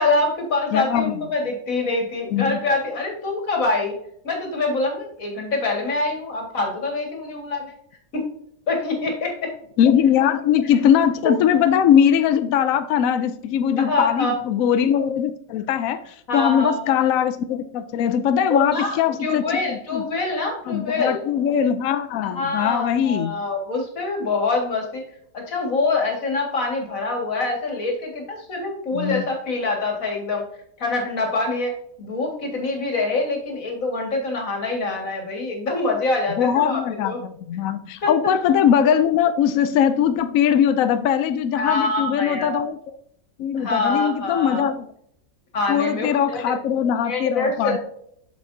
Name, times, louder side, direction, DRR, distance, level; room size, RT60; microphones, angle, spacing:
voice 1, 0.0-3.9 4.2-7.7 8.1-8.3 8.7-9.5 11.2-11.3 13.8-14.3 16.3-17.0 18.5-21.2 22.3-25.0 25.3-30.5 30.8-31.7 32.0-37.2 38.0-38.1 41.6-42.6 43.6-44.7 45.5-46.6 47.0-47.8, left 3 dB, 50° left, 1 dB, 2.3 m, -25 dB
voice 2, 0.7-1.2 2.3-2.6 9.8-20.0 20.7-23.3 28.9-29.2 36.3-42.8 43.4-44.9 45.7-47.8, left 9 dB, 75° left, 10 dB, 0.7 m, -21 dB
7.8 x 6.5 x 2.7 m, 0.69 s
omnidirectional pair, 1.9 m